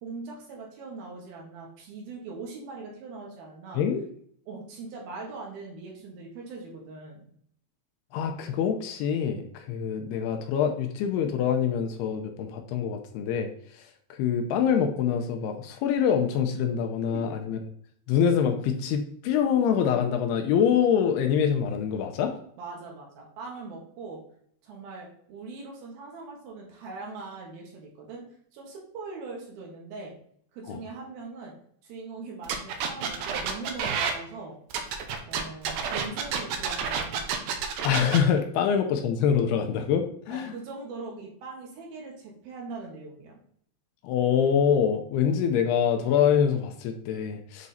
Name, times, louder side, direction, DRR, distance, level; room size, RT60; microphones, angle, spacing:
voice 1, 0.0-3.8 4.5-7.3 17.1-17.4 22.6-24.2 24.6-28.3 28.5-30.1 30.5-31.5 31.8-34.6 35.3-37.2 40.3-43.3, right 3 dB, 65° right, -1 dB, 3.0 m, -41 dB
voice 2, 8.1-17.6 18.1-22.3 30.7-30.8 37.8-40.5 44.0-47.7, left 8 dB, 80° left, 5 dB, 2.6 m, -25 dB
sound 1, 32.4-34.1 34.7-38.2, right 6 dB, 85° right, 1.9 m, -29 dB
8.3 x 3.6 x 4.2 m, 0.64 s
omnidirectional pair, 4.9 m